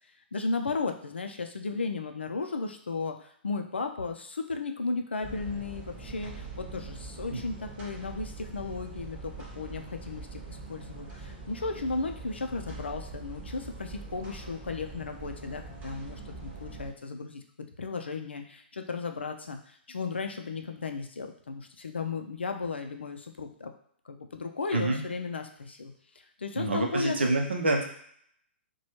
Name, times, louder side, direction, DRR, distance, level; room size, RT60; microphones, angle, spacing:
voice 1, 0.3-17.4 17.8-23.7 24.1-25.9 26.4-27.2, left 4 dB, 75° left, 5 dB, 0.4 m, -35 dB
sound 1, 5.2-16.9, right 3 dB, 25° right, 0.9 m, -43 dB
voice 2, 24.7-25.0 26.6-27.8, right 2 dB, 70° right, 1 dB, 0.6 m, -27 dB
2.9 x 2.2 x 3.0 m, 0.64 s
figure-of-eight pair, 115°, 6 cm